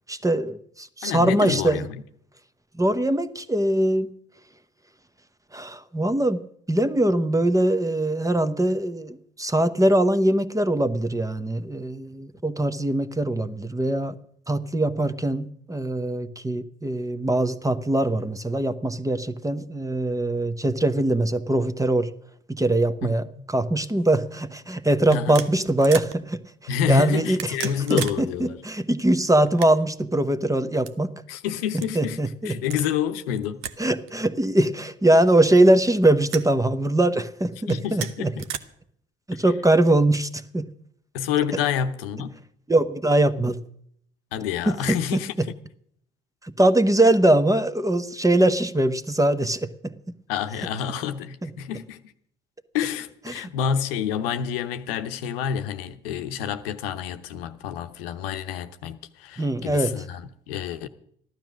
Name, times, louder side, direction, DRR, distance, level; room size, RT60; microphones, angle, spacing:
voice 1, 0.1-1.8 2.8-4.1 5.5-6.4 6.7-14.2 14.5-22.1 22.5-26.4 26.9-27.5 27.9-31.1 31.7-32.6 33.8-38.3 39.3-40.7 42.7-43.6 44.7-45.5 46.4-49.9 51.4-51.5 53.3-53.5 59.4-59.9, right 1 dB, 10° right, 1.0 m, -22 dB
voice 2, 1.0-2.0 23.0-23.4 25.1-25.5 26.7-28.6 31.3-32.2 32.4-33.6 37.7-38.4 41.1-42.4 44.3-45.3 50.3-52.0 52.7-60.9, left 8 dB, 75° left, 0.9 m, -28 dB
sound 1, 24.0-24.2 25.1-26.2 27.2-28.2 28.5-28.6 29.4-30.0 30.8-30.9 31.8-31.9 32.6-32.9 33.6-33.8 34.1-34.2 35.1-35.7 36.3-36.5 37.6-38.6, right 10 dB, 65° right, 0.9 m, -35 dB
14.5 x 12.0 x 6.2 m
hypercardioid pair, 50°, 29 cm